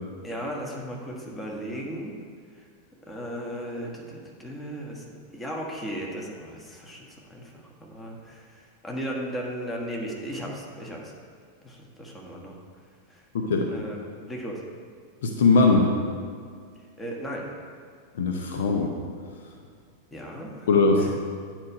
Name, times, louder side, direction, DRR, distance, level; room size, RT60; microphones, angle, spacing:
voice 1, 0.2-2.2 3.1-7.5 7.8-11.1 11.6-12.6 13.1-13.2 13.7-14.6 17.0-17.6 20.1-21.1, equal, 10° left, -2 dB, 1.4 m, -36 dB
voice 2, 13.3-13.7 15.2-15.9 18.1-18.9 20.7-21.2, left 3 dB, 60° left, 2 dB, 0.7 m, -20 dB
9.5 x 4.5 x 5.0 m, 2.1 s
figure-of-eight pair, 90°, 0 cm